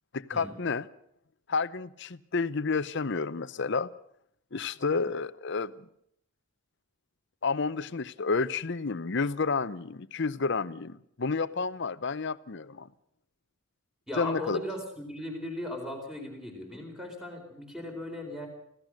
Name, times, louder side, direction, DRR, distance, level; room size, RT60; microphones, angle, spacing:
voice 1, 0.1-0.9 1.5-3.9 4.5-5.7 7.4-12.9 14.2-14.6, left 4 dB, 50° left, 16 dB, 0.7 m, -30 dB
voice 2, 14.1-18.5, left 1 dB, ahead, 2 dB, 4.4 m, -37 dB
25.0 x 16.5 x 6.4 m, 0.72 s
head